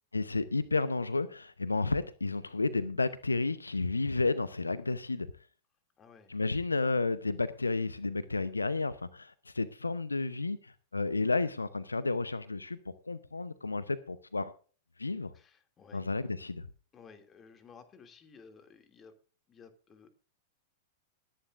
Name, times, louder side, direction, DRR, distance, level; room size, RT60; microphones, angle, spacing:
voice 1, 0.1-5.3 6.3-14.5 15.0-15.3 15.9-16.7, left 3 dB, 90° left, 16 dB, 0.7 m, -32 dB
voice 2, 6.0-6.3 15.3-16.1 16.9-19.2 19.5-20.1, left 5 dB, 25° left, 8 dB, 2.5 m, -55 dB
20.0 x 10.5 x 2.5 m, 0.38 s
figure-of-eight pair, 100°, 0 cm